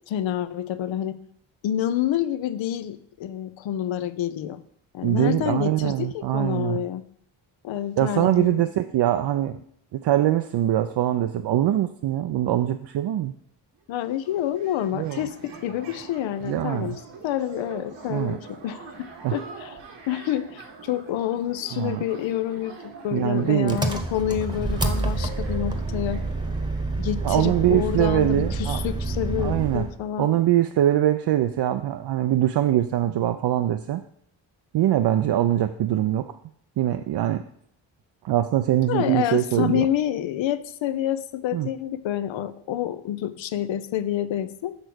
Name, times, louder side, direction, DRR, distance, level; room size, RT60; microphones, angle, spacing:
voice 1, 0.1-1.2 1.6-4.6 4.9-7.0 7.6-8.7 13.9-19.8 20.1-26.2 27.0-30.4 38.9-44.8, left 11 dB, 70° left, 13 dB, 0.6 m, -28 dB
voice 2, 5.0-6.8 8.0-9.6 9.9-13.3 14.9-15.3 16.4-17.0 18.1-18.4 19.2-19.4 21.7-22.0 23.1-23.8 27.2-28.8 29.4-29.9 30.2-34.0 34.7-36.3 36.8-37.4 38.2-39.9 41.5-41.7, right 12 dB, 60° right, 8 dB, 0.5 m, -23 dB
sound 1, 13.7-13.8 14.0-28.6, right 5 dB, 90° right, 1.7 m, -44 dB
Engine, 23.7-30.0, right 2 dB, 10° right, 1.0 m, -28 dB
6.6 x 3.4 x 6.1 m, 0.67 s
supercardioid pair, 55°, 48 cm